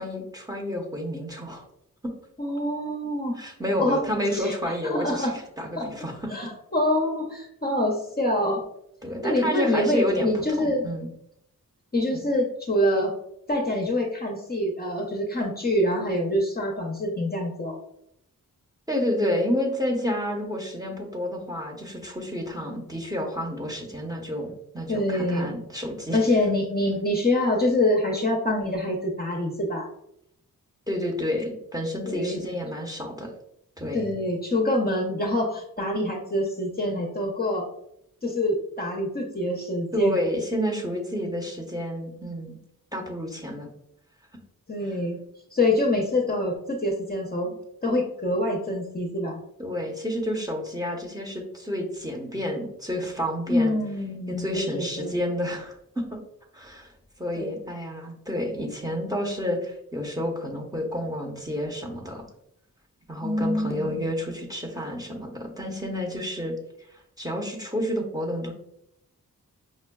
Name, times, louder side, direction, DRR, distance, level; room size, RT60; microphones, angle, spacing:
voice 1, 0.0-1.6 2.0-2.1 3.3-5.3 5.6-6.3 9.0-10.3 10.6-11.1 12.1-12.2 18.9-26.2 30.9-33.3 33.8-34.1 39.9-42.6 42.9-43.7 49.6-53.7 54.3-56.2 56.5-56.9 57.2-62.2 63.1-66.5 67.2-68.5, equal, 10° right, 0 dB, 0.7 m, -30 dB
voice 2, 2.4-3.3 3.8-4.0 4.3-4.5 4.8-5.3 5.7-5.8 6.3-8.6 9.2-10.8 11.9-13.1 13.5-17.8 24.9-25.4 26.1-29.9 32.1-32.4 33.9-37.6 38.2-40.2 44.7-45.2 45.5-49.4 53.5-55.1 57.4-57.6 63.2-64.0, left 1 dB, 25° left, -1 dB, 0.6 m, -25 dB
5.2 x 2.2 x 2.2 m, 0.75 s
wide cardioid pair, 65°, 36 cm